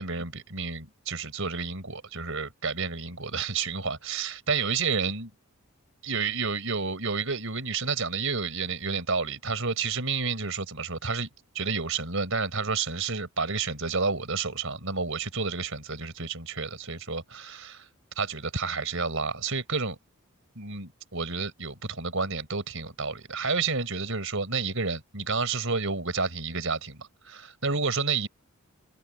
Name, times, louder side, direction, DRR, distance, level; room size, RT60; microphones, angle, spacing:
voice 1, 0.0-5.3 6.0-11.3 11.5-17.9 18.2-20.0 20.5-28.3, right 4 dB, 65° right, 4.7 m, -30 dB
head